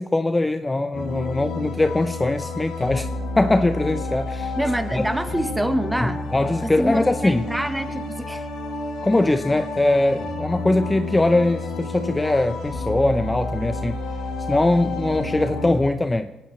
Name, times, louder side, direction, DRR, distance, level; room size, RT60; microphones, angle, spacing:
voice 1, 0.0-3.1 3.4-4.5 4.9-5.0 6.0-7.5 9.0-14.0 14.5-16.3, left 2 dB, 15° left, 9 dB, 0.7 m, -21 dB
sound 1, 0.9-15.8, left 2 dB, 90° left, 6.5 m, -30 dB
voice 2, 4.6-6.2 6.6-8.5, right 1 dB, 5° right, 9 dB, 1.2 m, -26 dB
19.5 x 17.0 x 3.3 m, 1.1 s
cardioid pair, 90°, 0 cm